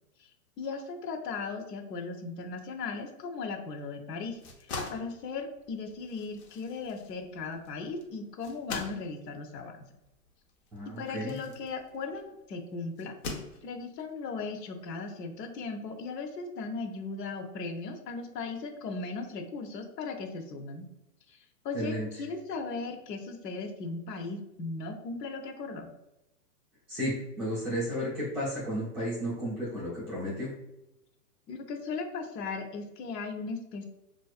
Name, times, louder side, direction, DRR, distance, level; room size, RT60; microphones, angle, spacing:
voice 1, 0.6-9.8 11.0-13.1 13.6-20.9 21.3-25.9 31.5-33.9, left 4 dB, 80° left, 4 dB, 0.7 m, -37 dB
sound 1, 4.2-12.3 13.0-14.0, left 3 dB, 45° left, 0.5 m, -43 dB
voice 2, 10.7-11.3 21.7-22.1 26.9-30.5, equal, 10° right, -9 dB, 0.5 m, -33 dB
2.4 x 2.3 x 2.3 m, 0.90 s
hypercardioid pair, 145°, 48 cm